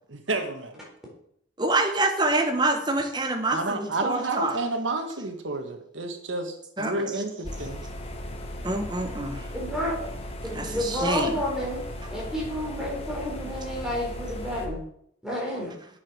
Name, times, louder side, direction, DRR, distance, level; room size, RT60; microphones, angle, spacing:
voice 1, 0.1-0.7 3.5-7.8, right 2 dB, 85° right, 5 dB, 1.7 m, -30 dB
voice 2, 1.6-4.6 6.8-7.2 8.6-9.5 10.5-11.4, right 2 dB, 25° right, 5 dB, 1.2 m, -26 dB
sound 1, 7.4-14.7, equal, 30° left, 1.3 m, -37 dB
voice 3, 9.5-10.0 10.4-11.8 12.1-14.8 15.2-15.7, left 1 dB, 5° right, -4 dB, 4.0 m, -30 dB
8.1 x 7.3 x 6.2 m, 0.69 s
head